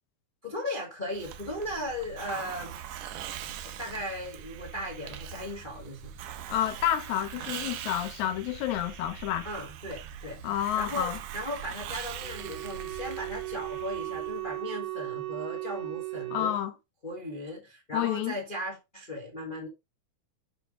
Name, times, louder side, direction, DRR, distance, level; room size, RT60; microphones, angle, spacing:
voice 1, 0.4-2.8 3.0-3.2 3.6-6.2 9.4-16.6 17.0-19.7, left 1 dB, 60° left, 0.5 m, -37 dB
Hiss, 1.1-14.6, right 9 dB, 90° right, 2.4 m, -42 dB
voice 2, 6.5-9.5 10.4-11.2 16.3-16.7 17.9-18.3, left 12 dB, 75° left, 1.9 m, -29 dB
Wind instrument woodwind instrument, 12.2-16.6, right 17 dB, 75° right, 1.5 m, -36 dB
7.8 x 3.1 x 5.0 m
omnidirectional pair, 3.6 m